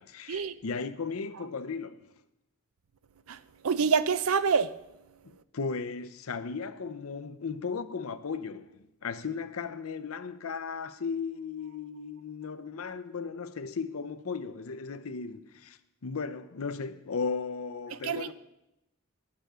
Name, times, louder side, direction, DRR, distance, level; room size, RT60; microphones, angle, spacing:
voice 1, 0.0-2.1 5.5-18.3, left 5 dB, 90° left, 0.6 m, -36 dB
voice 2, 3.6-4.7 18.0-18.3, right 6 dB, 85° right, 0.5 m, -26 dB
10.5 x 7.0 x 6.7 m
head